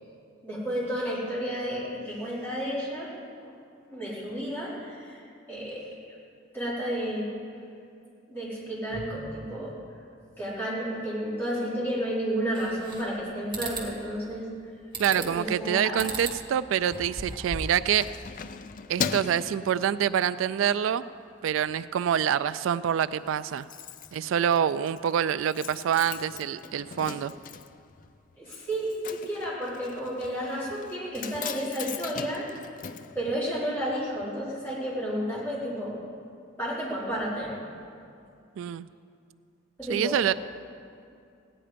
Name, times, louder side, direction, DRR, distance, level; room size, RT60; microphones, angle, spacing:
voice 1, 0.4-3.1 3.4-3.5 3.9-6.2 6.5-7.4 8.3-9.7 10.4-14.5 15.1-16.1 28.4-32.5 33.1-36.0 36.6-37.5 39.8-40.3, equal, 10° left, -9 dB, 4.0 m, -32 dB
sound 1, 12.5-13.2 13.5-13.9 14.9-15.4 16.0-16.4 16.8-17.8, right 3 dB, 25° right, 2.0 m, -36 dB
voice 2, 15.0-18.1 18.9-21.0 21.4-23.7 24.1-27.3 38.6-38.9 39.9-40.3, right 9 dB, 80° right, 15 dB, 0.3 m, -26 dB
Keys jangling, 17.4-20.5 20.9-21.2 21.5-22.2 22.5-22.6 22.8-22.9 23.1-33.9 34.2-34.3, left 6 dB, 40° left, 0.4 m, -39 dB
17.0 x 9.9 x 5.1 m, 2.5 s
head